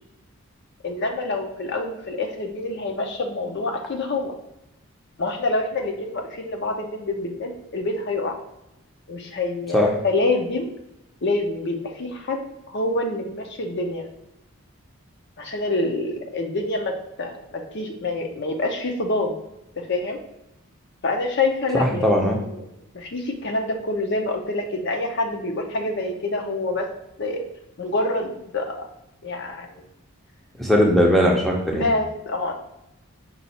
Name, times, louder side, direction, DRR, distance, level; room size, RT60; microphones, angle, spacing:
voice 1, 0.8-4.3 5.2-8.4 9.1-10.7 11.2-12.4 12.7-14.1 15.4-19.4 19.8-20.2 21.0-22.6 22.9-26.9 27.2-27.4 27.8-28.8 29.2-29.9 31.7-32.6, left 2 dB, 50° left, 3 dB, 0.6 m, -26 dB
voice 2, 21.8-22.4 30.6-31.9, equal, ahead, -1 dB, 0.6 m, -19 dB
5.4 x 2.4 x 4.1 m, 0.87 s
head